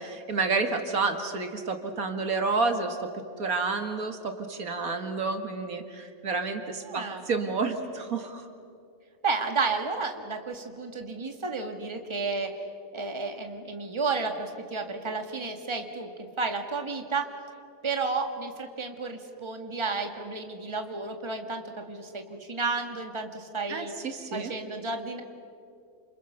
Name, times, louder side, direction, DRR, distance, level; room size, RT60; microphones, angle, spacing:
voice 1, 0.0-3.0 3.4-8.4 23.7-24.5, right 4 dB, 75° right, 6 dB, 2.2 m, -30 dB
voice 2, 6.9-7.2 9.2-12.5 12.9-16.1 16.4-17.3 17.8-23.9 24.3-25.2, right 4 dB, 20° right, 5 dB, 1.8 m, -32 dB
29.0 x 27.5 x 6.9 m, 2.4 s
omnidirectional pair, 1.5 m